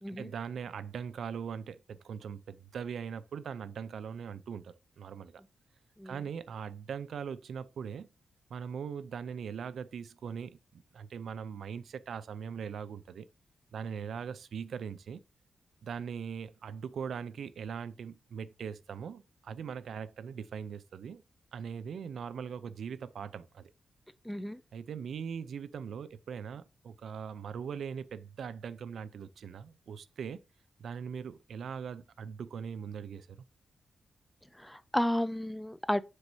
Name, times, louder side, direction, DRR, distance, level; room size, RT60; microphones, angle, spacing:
voice 1, 0.1-5.4 6.0-8.1 8.5-13.3 13.7-15.2 15.8-21.2 21.5-23.7 24.7-30.4 30.8-33.4, right 7 dB, 65° right, 0.5 m, -40 dB
voice 2, 24.2-24.6 34.5-36.0, equal, 5° left, 0.3 m, -32 dB
7.4 x 6.4 x 2.7 m
wide cardioid pair, 175°, 0 cm